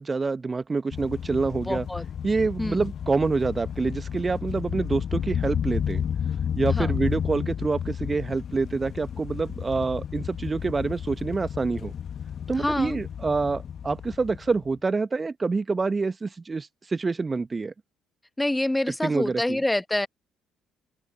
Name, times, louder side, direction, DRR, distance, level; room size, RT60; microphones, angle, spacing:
voice 1, 0.0-1.9 2.2-6.1 6.6-11.9 12.5-17.7 19.0-19.6, right 4 dB, 25° right, 1.7 m, -27 dB
sound 1, 0.9-14.7, left 8 dB, 45° left, 2.0 m, -32 dB
voice 2, 1.6-2.0 2.6-2.9 6.7-7.0 12.6-13.0 18.4-20.1, left 1 dB, 10° left, 1.5 m, -27 dB
open air
figure-of-eight pair, 50°, 0 cm